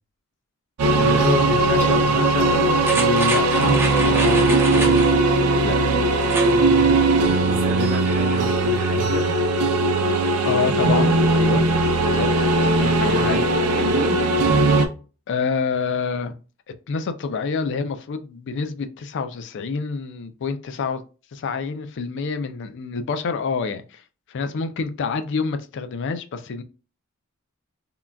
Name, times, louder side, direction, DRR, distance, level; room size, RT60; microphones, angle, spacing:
sound 1, 0.8-14.9, right 2 dB, 90° right, 0.5 m, -19 dB
voice 1, 0.9-5.9 10.4-11.6 11.9-13.4 15.3-16.3 16.9-21.0 21.3-24.0 24.3-26.6, left 4 dB, 55° left, 0.4 m, -27 dB
sound 2, 2.8-5.2 6.2-6.6 7.0-7.1, right 2 dB, 10° right, 0.5 m, -29 dB
voice 2, 6.3-7.0 7.4-9.3 13.0-14.3, right 1 dB, 40° right, 0.9 m, -30 dB
3.7 x 2.2 x 2.2 m
head